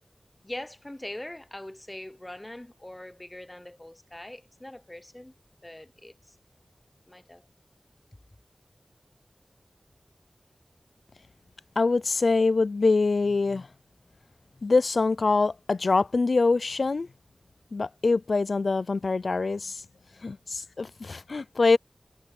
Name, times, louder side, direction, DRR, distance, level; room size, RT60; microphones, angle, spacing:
voice 1, 0.4-5.3 5.6-6.4 7.1-7.4, left 1 dB, 20° left, 0.9 m, -42 dB
voice 2, 11.8-13.7 14.6-17.1 17.7-19.8 20.2-21.8, left 3 dB, 75° left, 0.4 m, -24 dB
wide cardioid pair, 65°, 0 cm